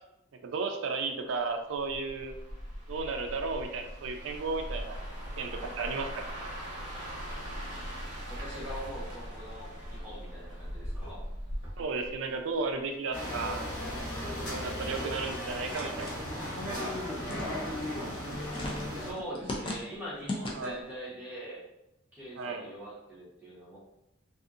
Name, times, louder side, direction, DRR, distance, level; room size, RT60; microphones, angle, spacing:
voice 1, 0.4-2.3 2.9-5.0 5.4-6.3 11.8-13.6 14.5-16.1 20.6-20.8 22.4-22.6, right 4 dB, 65° right, 4 dB, 0.3 m, -34 dB
sound 1, 1.7-12.8 13.2-13.5, equal, 40° right, 0.8 m, -40 dB
voice 2, 8.3-11.2 18.1-21.6 22.1-23.8, equal, 10° right, -9 dB, 0.9 m, -42 dB
sound 2, 13.1-19.1, left 1 dB, 50° left, 1.1 m, -36 dB
sound 3, 15.1-20.9, left 1 dB, 25° left, 0.4 m, -40 dB
2.6 x 2.6 x 2.4 m, 0.85 s
head